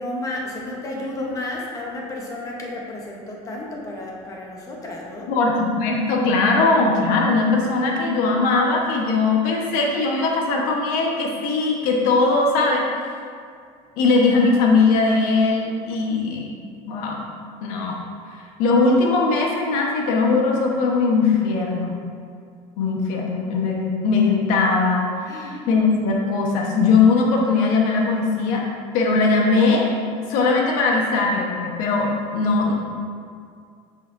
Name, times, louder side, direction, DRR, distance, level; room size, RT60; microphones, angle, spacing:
voice 1, 0.0-5.3 25.3-25.7, left 1 dB, 20° left, -2 dB, 1.0 m, -32 dB
voice 2, 5.3-12.8 14.0-16.5 16.9-17.2 17.6-18.0 18.6-22.0 22.8-28.7 28.9-29.9 30.3-32.7, left 3 dB, 65° left, 0 dB, 1.2 m, -20 dB
8.1 x 5.7 x 2.6 m, 2.3 s
cardioid pair, 170°, 15 cm